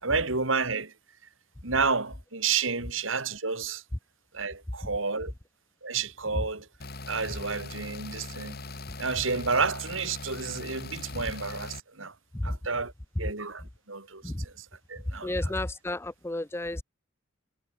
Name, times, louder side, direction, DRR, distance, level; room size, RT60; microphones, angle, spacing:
voice 1, 0.0-0.9 1.6-3.8 4.3-5.3 5.8-6.7 7.1-8.6 9.0-12.1 12.4-12.9 13.2-15.5, right 4 dB, 70° right, 3.3 m, -30 dB
sound 1, 6.8-11.8, left 2 dB, 50° left, 5.3 m, -41 dB
voice 2, 15.2-16.8, left 1 dB, 10° left, 0.6 m, -32 dB
head